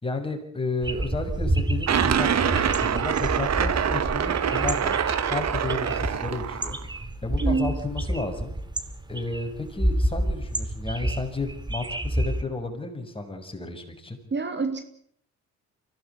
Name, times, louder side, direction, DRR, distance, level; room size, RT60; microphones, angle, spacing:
voice 1, 0.0-4.9 5.3-6.8 7.2-8.5 9.1-14.2, left 2 dB, 20° left, 3 dB, 6.6 m, -32 dB
sound 1, 0.8-12.4, right 1 dB, 15° right, 2.8 m, -29 dB
sound 2, 1.9-6.8, right 8 dB, 60° right, 1.9 m, -25 dB
voice 2, 7.4-7.8 14.3-14.8, right 4 dB, 35° right, 8 dB, 2.6 m, -26 dB
24.0 x 17.0 x 8.7 m, 0.67 s
cardioid pair, 90°, 30 cm